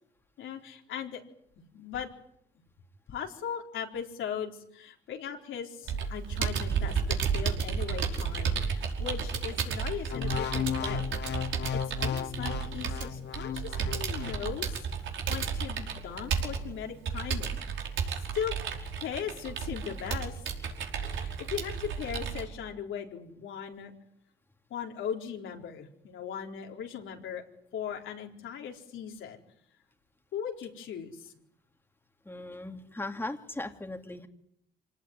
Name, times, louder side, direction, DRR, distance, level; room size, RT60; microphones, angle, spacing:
voice 1, 0.4-1.2 1.7-2.1 3.1-11.1 11.7-14.8 15.3-17.5 18.3-18.5 19.0-20.4 21.1-23.9 24.7-27.4 27.7-29.4 30.3-31.3, left 8 dB, 80° left, 2 dB, 4.2 m, -38 dB
Computer keyboard, 5.9-22.4, right 6 dB, 75° right, 5.2 m, -33 dB
sound 1, 10.1-14.4 15.0-15.2, left 9 dB, 60° left, 1.5 m, -34 dB
voice 2, 32.2-34.3, left 2 dB, 10° left, 4 dB, 2.7 m, -38 dB
26.0 x 18.5 x 9.6 m, 0.74 s
cardioid pair, 90°, 20 cm